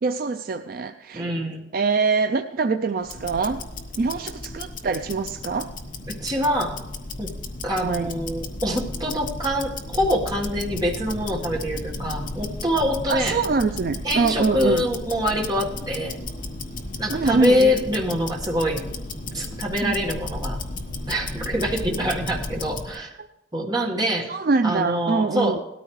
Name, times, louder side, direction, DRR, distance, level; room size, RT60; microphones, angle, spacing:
voice 1, 0.0-1.3 1.7-3.6 4.0-5.7 7.8-8.1 13.1-14.9 17.1-17.8 19.8-20.0 23.2-23.3 24.3-25.6, right 4 dB, 45° right, 8 dB, 0.4 m, -24 dB
voice 2, 1.1-1.6 6.1-6.8 7.2-7.3 7.6-13.4 14.0-16.2 17.0-18.8 19.3-20.6 21.1-23.1 23.5-24.3 24.6-25.6, equal, 20° right, -1 dB, 1.5 m, -25 dB
Tick-tock, 3.0-23.0, left 2 dB, 40° left, 1.1 m, -34 dB
18.5 x 13.5 x 3.2 m, 0.93 s
head